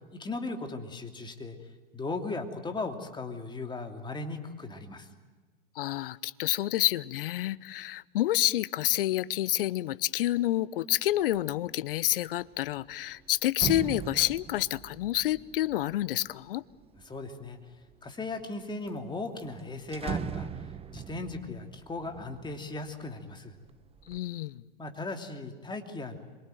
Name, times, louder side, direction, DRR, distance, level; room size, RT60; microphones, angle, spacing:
voice 1, 0.1-1.6 1.9-5.1 17.0-17.6 18.0-20.5 20.9-23.6 24.8-26.2, left 3 dB, 15° left, 5 dB, 3.0 m, -37 dB
voice 2, 5.8-16.6 24.1-24.6, left 14 dB, 65° left, 20 dB, 0.9 m, -28 dB
sound 1, 11.2-11.5 11.9-17.2 17.9-18.5 18.9-19.0 19.3-23.2 23.6-24.2, right 7 dB, 20° right, 1.0 m, -40 dB
27.0 x 23.0 x 9.3 m, 1.3 s
hypercardioid pair, 100°, 29 cm